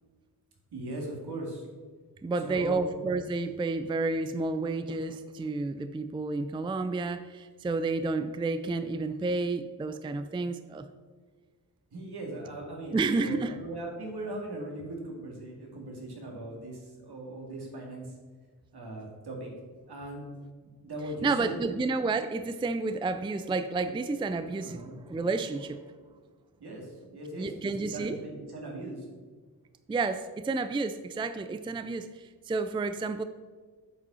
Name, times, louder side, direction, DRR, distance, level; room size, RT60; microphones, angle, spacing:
voice 1, 0.7-1.6 2.4-2.8 11.9-18.2 18.7-19.5 19.9-20.3 20.6-21.7 24.6-25.0 26.6-29.1, right 1 dB, 70° right, 0 dB, 2.3 m, -39 dB
voice 2, 2.2-10.9 12.9-13.6 21.2-25.8 27.4-28.2 29.9-33.2, right 3 dB, 15° right, 11 dB, 0.4 m, -30 dB
8.0 x 5.2 x 5.5 m, 1.5 s
cardioid pair, 75°, 40 cm